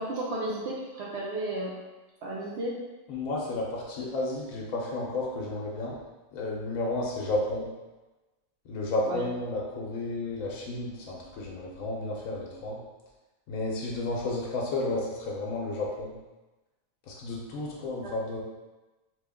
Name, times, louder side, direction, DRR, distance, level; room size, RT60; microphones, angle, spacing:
voice 1, 0.0-1.7 2.2-2.8 9.1-9.2 18.0-18.1, right 1 dB, 65° right, -4 dB, 0.7 m, -33 dB
voice 2, 3.1-6.0 6.3-7.7 8.7-12.8 13.5-16.1 17.1-18.4, left 2 dB, 75° left, -3 dB, 1.1 m, -32 dB
3.1 x 2.2 x 3.5 m, 1.1 s
omnidirectional pair, 1.5 m